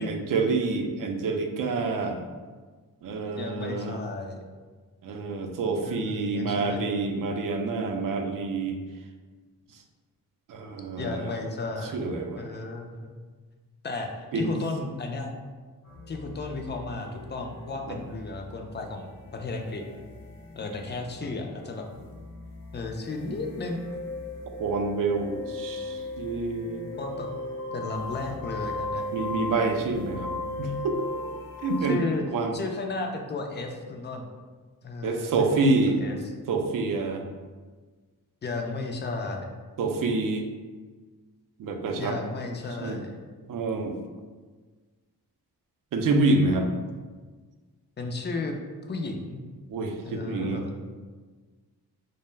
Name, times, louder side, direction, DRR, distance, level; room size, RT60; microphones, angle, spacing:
voice 1, 0.0-2.2 3.0-4.0 5.0-8.8 10.5-11.3 11.9-12.4 14.3-14.5 17.9-18.0 24.6-26.9 29.1-30.3 30.6-31.0 31.6-32.1 32.3-32.6 35.0-36.0 36.5-37.2 39.8-40.4 41.6-42.2 42.8-43.0 43.5-43.9 45.9-46.7 49.7-50.6, right 3 dB, 55° right, 5 dB, 0.5 m, -27 dB
voice 2, 3.4-4.4 5.8-6.9 11.0-12.0 12.4-13.1 13.8-15.3 16.1-19.8 20.5-21.9 22.7-23.8 27.0-27.3 27.7-29.0 31.9-32.2 32.5-34.3 34.8-36.3 38.4-39.5 42.0-43.2 46.3-46.7 48.0-48.6 48.9-49.4 50.0-50.6, left 3 dB, 30° left, 3 dB, 0.4 m, -34 dB
sound 1, 15.8-32.0, left 2 dB, 55° left, 0.7 m, -38 dB
2.1 x 2.1 x 3.2 m, 1.4 s
supercardioid pair, 50°, 40 cm